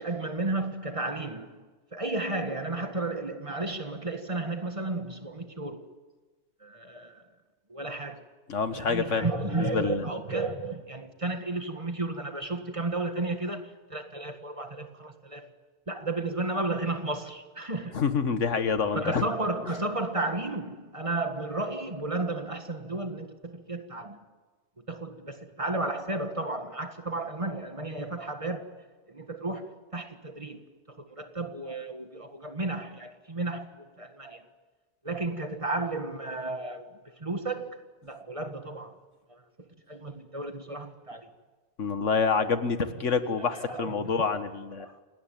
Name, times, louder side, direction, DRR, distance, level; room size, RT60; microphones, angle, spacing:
voice 1, 0.0-1.7 1.9-5.9 6.6-7.2 7.7-8.2 8.7-15.5 15.9-18.0 18.9-24.3 24.8-28.8 29.1-30.6 30.9-34.4 35.0-39.0 39.3-39.4 39.9-41.3 43.5-44.3 44.8-45.0, right 2 dB, 25° right, 1.7 m, -33 dB
voice 2, 8.5-10.0 17.9-19.2 41.8-44.9, left 5 dB, 85° left, 1.8 m, -27 dB
28.5 x 18.5 x 9.3 m
omnidirectional pair, 1.2 m